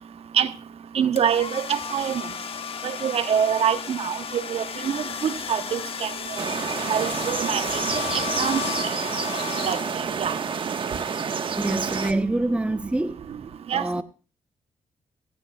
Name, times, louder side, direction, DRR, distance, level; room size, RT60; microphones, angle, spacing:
voice 1, 0.9-2.2 2.8-6.1 6.9-7.8 8.1-8.6 9.6-9.8 10.2-10.3 13.7-13.8, right 8 dB, 65° right, 1.0 m, -25 dB
sound 1, 1.2-10.3, left 7 dB, 60° left, 1.2 m, -34 dB
sound 2, 6.4-12.1, right 6 dB, 50° right, 1.4 m, -28 dB
voice 2, 11.6-13.1 13.7-14.0, right 2 dB, 10° right, 0.8 m, -25 dB
16.0 x 15.5 x 2.4 m
cardioid pair, 75°, 11 cm